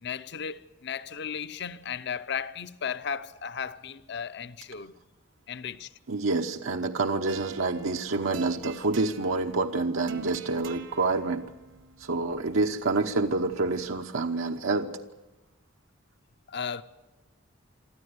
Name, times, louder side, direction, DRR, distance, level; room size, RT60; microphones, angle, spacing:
voice 1, 0.0-4.9 5.5-5.9 16.5-16.8, left 7 dB, 55° left, 0.7 m, -35 dB
voice 2, 6.1-11.5 12.0-14.9, right 3 dB, 90° right, 1.0 m, -27 dB
sound 1, 7.3-14.0, right 4 dB, 70° right, 1.2 m, -46 dB
24.5 x 13.5 x 9.6 m
head